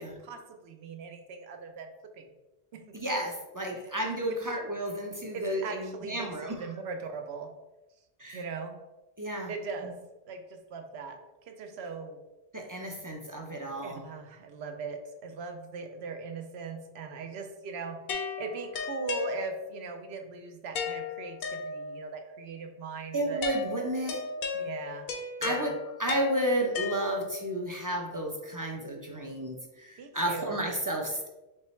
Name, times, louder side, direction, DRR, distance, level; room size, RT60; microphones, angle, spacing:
voice 1, 0.0-2.3 2.7-3.0 4.3-4.5 5.3-7.5 8.3-8.8 9.5-10.0 10.3-11.2 11.5-12.2 13.8-18.0 18.4-23.4 24.5-25.1 25.4-25.8 30.0-30.5, right 5 dB, 80° right, 5 dB, 0.8 m, -40 dB
voice 2, 2.9-6.5 8.2-8.4 9.2-9.5 12.5-14.0 23.1-24.2 25.4-25.7 26.0-31.3, right 1 dB, 30° right, 0 dB, 0.4 m, -32 dB
sound 1, 18.1-19.9 20.7-22.2 23.4-27.5, left 5 dB, 65° left, 0.8 m, -36 dB
4.6 x 3.2 x 3.0 m, 1.0 s
omnidirectional pair, 1.1 m